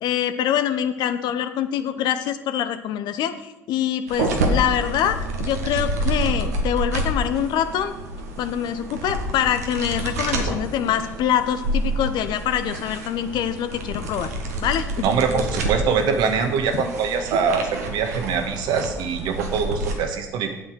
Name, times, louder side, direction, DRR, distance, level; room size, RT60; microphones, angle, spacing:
voice 1, 0.0-7.9 8.4-14.3 14.6-14.9 16.7-16.8, left 10 dB, 60° left, 11 dB, 0.8 m, -24 dB
sound 1, 4.1-19.9, right 1 dB, 85° right, 1.3 m, -28 dB
voice 2, 15.0-20.5, right 6 dB, 65° right, 5 dB, 1.5 m, -23 dB
8.4 x 7.3 x 6.3 m, 0.98 s
hypercardioid pair, 55°, 8 cm